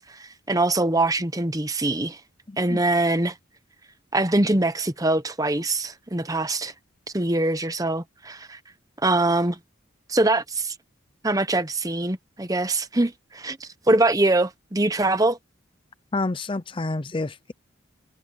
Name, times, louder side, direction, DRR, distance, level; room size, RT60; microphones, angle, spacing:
voice 1, 0.0-2.2 2.6-3.3 4.1-6.7 7.1-8.6 9.0-9.6 10.1-10.7 11.2-15.4, right 2 dB, 15° right, 0.9 m, -23 dB
voice 2, 2.5-2.8 16.1-17.5, left 2 dB, 25° left, 0.5 m, -29 dB
head